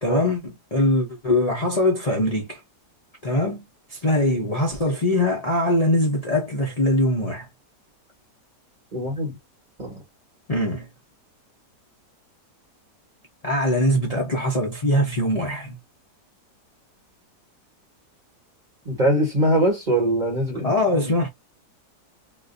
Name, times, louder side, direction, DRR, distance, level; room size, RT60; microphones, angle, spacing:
voice 1, 0.0-2.6 3.2-7.5 10.5-10.9 13.4-15.8 20.6-21.3, left 1 dB, 45° left, 0.4 m, -22 dB
voice 2, 8.9-9.4 9.8-10.0 18.8-20.8, right 1 dB, 30° right, 1.5 m, -22 dB
3.6 x 2.6 x 2.5 m
omnidirectional pair, 1.8 m